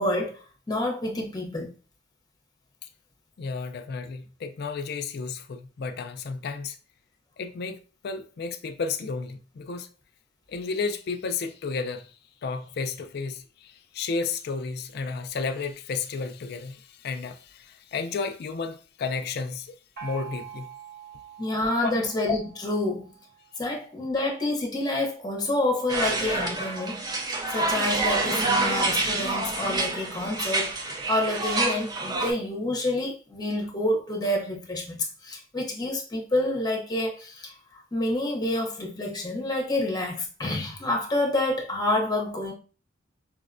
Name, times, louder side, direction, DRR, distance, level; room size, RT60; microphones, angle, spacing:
voice 1, 0.0-1.7 21.4-23.1 23.6-27.1 27.5-42.5, left 1 dB, 20° left, 0.7 m, -28 dB
voice 2, 3.4-6.8 7.4-7.8 8.0-9.9 10.5-12.2 12.4-19.7 20.0-20.7 21.8-21.9, left 4 dB, 50° left, 0.3 m, -32 dB
Gong, 20.0-23.5, right 8 dB, 50° right, 0.8 m, -44 dB
sound 1, 25.9-32.3, right 2 dB, 20° right, 0.4 m, -27 dB
4.8 x 2.1 x 2.5 m
head